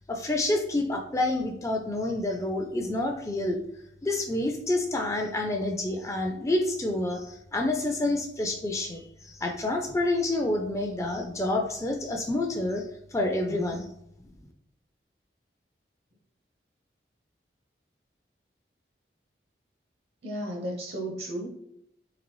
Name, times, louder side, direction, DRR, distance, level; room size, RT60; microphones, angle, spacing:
voice 1, 0.1-3.6 4.0-12.9 13.1-13.8, left 2 dB, 15° left, 4 dB, 0.3 m, -28 dB
voice 2, 13.5-13.9 20.2-21.5, right 1 dB, 65° right, 0 dB, 0.7 m, -34 dB
3.8 x 3.7 x 3.0 m, 0.74 s
head